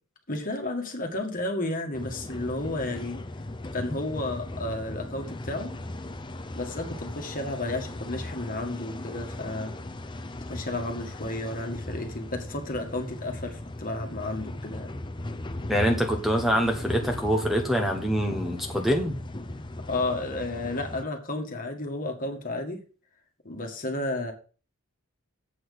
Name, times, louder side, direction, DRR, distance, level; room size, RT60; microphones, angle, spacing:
voice 1, 0.3-3.2 3.7-5.7 6.5-9.8 10.4-15.0 19.9-22.8 23.4-24.3, left 2 dB, 40° left, 4 dB, 1.9 m, -32 dB
sound 1, 1.9-21.0, left 1 dB, 20° left, 0.7 m, -37 dB
voice 2, 15.7-19.2, equal, ahead, 3 dB, 1.2 m, -25 dB
8.0 x 6.3 x 6.7 m, 0.37 s
head